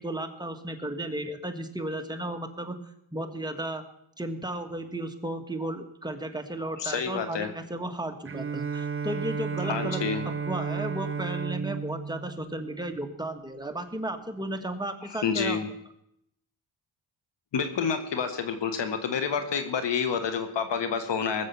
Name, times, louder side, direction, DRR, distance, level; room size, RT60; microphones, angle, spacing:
voice 1, 0.0-2.8 3.1-3.8 4.2-15.6, right 1 dB, 10° right, 5 dB, 1.6 m, -34 dB
voice 2, 6.8-7.5 9.6-10.2 15.2-15.7 17.5-21.5, left 6 dB, 70° left, 8 dB, 1.5 m, -28 dB
Bowed string instrument, 8.3-13.5, right 5 dB, 30° right, 0.6 m, -33 dB
19.5 x 7.5 x 7.1 m, 0.78 s
cardioid pair, 105°, 45 cm